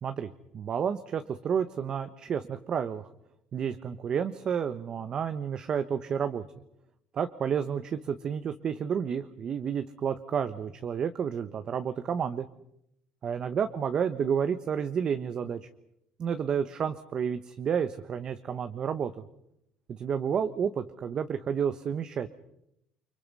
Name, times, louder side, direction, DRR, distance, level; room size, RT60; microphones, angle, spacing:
voice 1, 0.0-3.1 3.5-6.4 7.1-12.5 13.2-15.7 16.2-19.1 20.0-22.3, right 7 dB, 40° right, 9 dB, 1.2 m, -30 dB
30.0 x 25.0 x 5.6 m, 0.79 s
cardioid pair, 140°, 2 cm